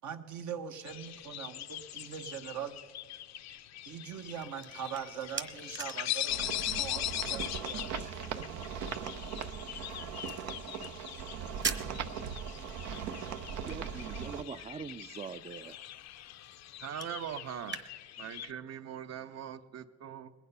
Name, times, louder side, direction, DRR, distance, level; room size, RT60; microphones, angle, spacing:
voice 1, 0.0-2.8 3.8-6.3 6.8-8.6, right 8 dB, 75° right, 6 dB, 1.2 m, -42 dB
sound 1, 0.9-18.5, left 12 dB, 60° left, 0.5 m, -41 dB
sound 2, 4.1-17.9, right 5 dB, 40° right, 1.1 m, -46 dB
sound 3, 6.3-14.4, right 7 dB, 90° right, 0.8 m, -39 dB
voice 2, 13.6-15.8, right 6 dB, 20° right, 12 dB, 0.4 m, -43 dB
voice 3, 16.8-17.8 18.2-20.3, right 9 dB, 60° right, 11 dB, 0.8 m, -41 dB
21.0 x 9.2 x 5.5 m, 1.5 s
cardioid pair, 90°, 30 cm